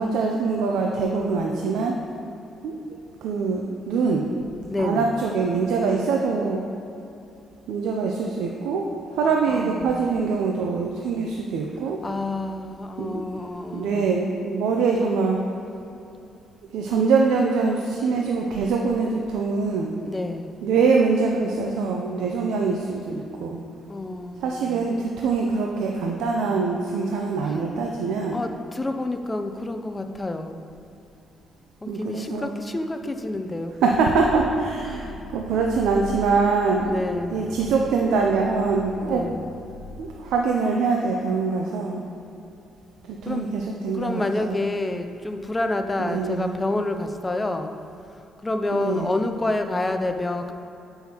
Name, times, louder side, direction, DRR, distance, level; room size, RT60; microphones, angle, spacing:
voice 1, 0.0-2.0 2.6-2.8 3.2-4.3 4.8-6.6 7.7-12.0 13.0-13.2 13.7-15.4 16.7-20.0 20.6-23.6 24.4-28.4 31.9-32.5 33.8-39.2 40.0-42.0 43.1-44.6 46.0-46.5 48.7-49.1, right 4 dB, 85° right, 0 dB, 0.4 m, -24 dB
voice 2, 4.7-5.1 9.5-10.1 12.0-14.5 20.0-20.6 23.9-24.9 27.4-27.6 28.3-30.6 31.8-33.8 34.9-35.1 36.8-37.7 39.1-39.5 43.2-43.5 43.9-47.8 48.4-50.5, left 2 dB, 20° left, 7 dB, 0.4 m, -29 dB
sound 1, 34.1-40.0, left 1 dB, 75° left, 1.4 m, -40 dB
7.6 x 5.5 x 2.9 m, 2.8 s
cardioid pair, 90°, 0 cm